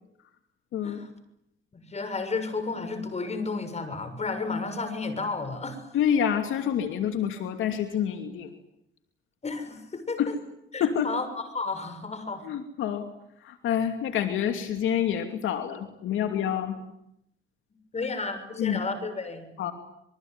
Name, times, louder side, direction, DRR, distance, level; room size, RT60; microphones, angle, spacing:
voice 1, 1.7-5.8 9.4-10.3 10.7-11.3 11.5-12.4 17.9-19.5, left 4 dB, 35° left, 10 dB, 6.7 m, -32 dB
voice 2, 5.9-8.5 10.2-10.4 10.8-11.1 12.4-13.1 13.4-16.8 18.6-18.8 19.6-19.7, left 9 dB, 80° left, 6 dB, 2.8 m, -27 dB
27.0 x 22.5 x 9.6 m, 0.78 s
cardioid pair, 90°, 20 cm